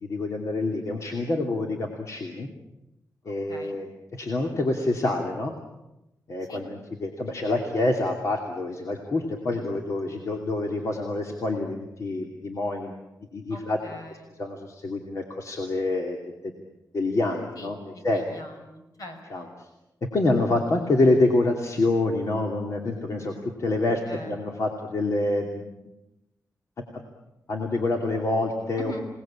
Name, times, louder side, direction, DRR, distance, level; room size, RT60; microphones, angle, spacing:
voice 1, 0.0-2.5 3.3-5.5 6.3-12.9 13.3-13.8 14.4-16.2 16.4-16.5 16.9-18.4 19.3-19.7 20.1-23.3 23.6-25.7 26.9-27.0 27.5-29.1, left 2 dB, 55° left, 2 dB, 2.7 m, -27 dB
voice 2, 3.2-3.8 6.5-6.6 13.5-14.3 17.6-19.5 24.1-24.4 28.8-29.0, left 1 dB, 70° left, 5 dB, 5.7 m, -42 dB
27.5 x 19.0 x 8.8 m, 0.95 s
wide cardioid pair, 120°, 6 cm